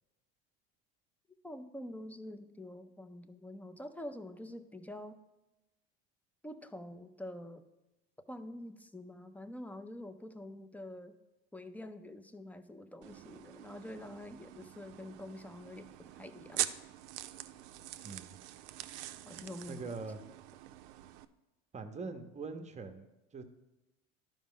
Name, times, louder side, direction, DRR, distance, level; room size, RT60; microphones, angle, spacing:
voice 1, 1.4-5.2 6.4-7.6 8.3-11.1 11.5-16.6 19.2-20.0, left 1 dB, 5° left, 10 dB, 0.4 m, -46 dB
sound 1, 13.0-21.3, right 14 dB, 75° right, 0.5 m, -44 dB
voice 2, 18.0-18.4 19.7-20.2 21.7-23.1 23.3-23.4, right 4 dB, 20° right, 7 dB, 0.8 m, -42 dB
11.5 x 5.2 x 3.7 m, 1.0 s
supercardioid pair, 95°, 34 cm